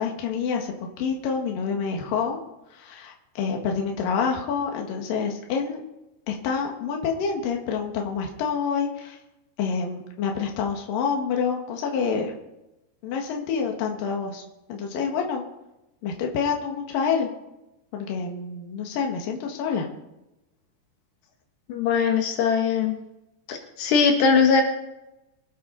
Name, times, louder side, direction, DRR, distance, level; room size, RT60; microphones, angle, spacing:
voice 1, 0.0-2.4 2.7-5.8 6.3-9.2 9.6-12.3 13.0-14.4 14.7-15.4 16.0-17.3 17.9-19.9, left 6 dB, 60° left, 1 dB, 3.2 m, -27 dB
voice 2, 21.7-23.0 23.5-24.6, left 5 dB, 80° left, 3 dB, 3.7 m, -20 dB
24.0 x 9.5 x 4.2 m, 0.93 s
omnidirectional pair, 4.8 m